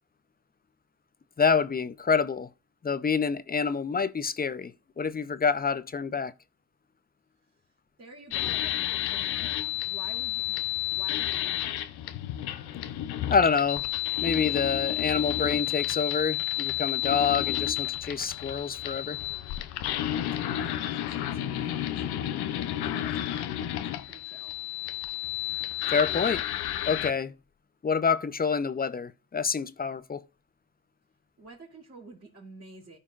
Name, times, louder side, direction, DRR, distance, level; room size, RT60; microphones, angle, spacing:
voice 1, 1.4-2.5 2.8-6.3 13.3-13.8 14.2-19.2 25.9-26.4 26.9-27.3 27.8-30.2, left 5 dB, 25° left, 0.6 m, -27 dB
voice 2, 8.0-10.6 10.8-11.7 20.6-22.3 22.8-24.6 31.4-33.0, right 2 dB, 35° right, 2.8 m, -49 dB
sound 1, 8.3-27.1, left 13 dB, 85° left, 0.7 m, -31 dB
14.0 x 5.4 x 2.4 m
cardioid pair, 70°, 38 cm